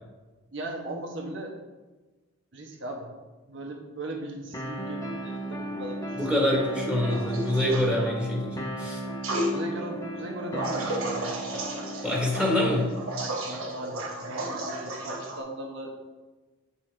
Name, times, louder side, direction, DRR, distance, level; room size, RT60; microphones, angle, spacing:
voice 1, 0.5-1.5 2.5-3.1 3.5-6.6 9.5-11.4 13.2-15.9, right 1 dB, 60° right, 2 dB, 1.2 m, -38 dB
sound 1, 4.5-12.5, right 1 dB, 15° left, 0.7 m, -35 dB
voice 2, 6.2-9.0 12.0-12.9, left 1 dB, 5° right, -3 dB, 1.4 m, -25 dB
sound 2, 7.1-7.9 9.2-9.5 10.6-15.4, right 1 dB, 85° right, 1.1 m, -33 dB
8.8 x 5.6 x 3.4 m, 1.2 s
head